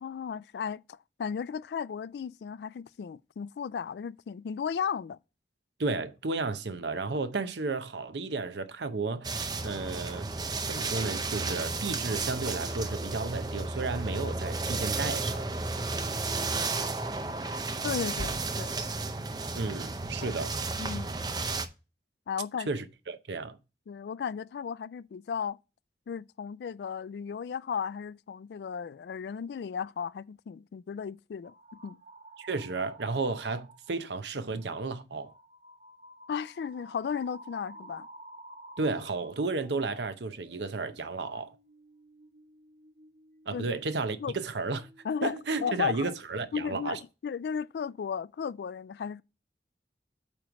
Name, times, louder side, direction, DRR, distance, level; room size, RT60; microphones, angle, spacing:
voice 1, 0.0-5.2 17.8-18.7 20.2-20.3 20.8-21.2 22.3-22.7 23.9-25.6 26.1-32.0 36.3-38.1 43.5-43.7 44.2-44.3 45.0-45.4 45.6-46.1 46.5-49.2, left 7 dB, 75° left, 0.3 m, -35 dB
voice 2, 5.8-10.3 10.7-15.5 19.5-20.6 22.7-23.6 32.4-35.3 38.8-41.6 43.5-44.9 45.2-47.0, right 3 dB, 85° right, 0.7 m, -33 dB
sound 1, 9.2-21.7, right 3 dB, 25° right, 0.5 m, -33 dB
sound 2, 31.4-34.0 34.4-34.7 35.1-45.5 45.7-46.4, right 1 dB, 45° right, 1.4 m, -53 dB
8.7 x 3.1 x 6.1 m
head